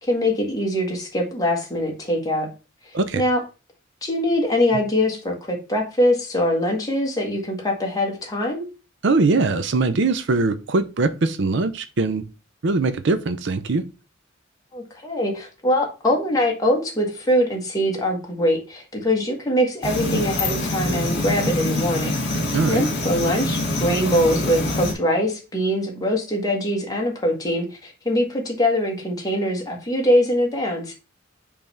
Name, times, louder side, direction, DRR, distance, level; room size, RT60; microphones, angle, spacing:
voice 1, 0.1-2.5 3.1-3.4 4.0-8.7 14.7-22.1 22.7-30.9, left 1 dB, 20° left, 0 dB, 1.8 m, -23 dB
voice 2, 9.0-12.2 12.6-13.8 22.5-22.9, right 3 dB, 60° right, 12 dB, 0.5 m, -21 dB
sound 1, 19.8-24.9, left 1 dB, 55° left, 2.4 m, -25 dB
5.3 x 3.4 x 5.7 m, 0.31 s
head